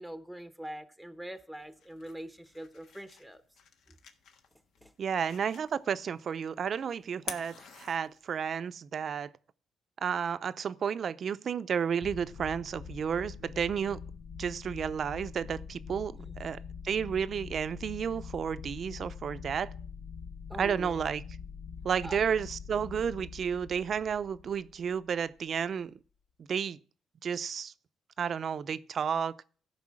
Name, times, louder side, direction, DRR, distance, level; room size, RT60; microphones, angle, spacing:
voice 1, 0.0-3.4 4.8-4.9 16.2-16.4 20.5-21.0 22.0-22.2, right 1 dB, 5° left, 0.9 m, -43 dB
sound 1, 1.6-8.6, left 6 dB, 80° left, 1.4 m, -49 dB
voice 2, 5.0-9.3 10.0-14.0 14.4-16.6 16.8-19.7 20.6-21.2 21.8-25.9 26.5-26.8 27.2-27.7 28.2-29.4, right 7 dB, 55° right, 0.6 m, -32 dB
sound 2, 12.0-25.3, left 6 dB, 55° left, 0.8 m, -44 dB
14.0 x 5.5 x 7.5 m
cardioid pair, 90°, 0 cm